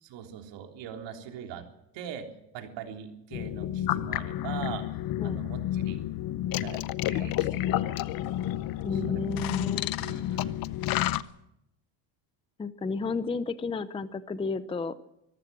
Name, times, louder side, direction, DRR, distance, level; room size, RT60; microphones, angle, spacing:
voice 1, 0.0-1.7 1.9-2.3 2.5-4.9 5.2-6.0 6.6-6.8 7.1-8.1 8.9-9.2 10.0-11.3, right 9 dB, 60° right, 3 dB, 3.7 m, -42 dB
sound 1, 3.3-11.2, left 13 dB, 45° left, 0.7 m, -30 dB
sound 2, 6.2-11.4, left 5 dB, 80° left, 6.0 m, -56 dB
voice 2, 8.8-9.9 12.6-15.0, left 3 dB, 10° left, 13 dB, 0.7 m, -32 dB
24.5 x 14.5 x 7.6 m, 0.83 s
cardioid pair, 140°, 50 cm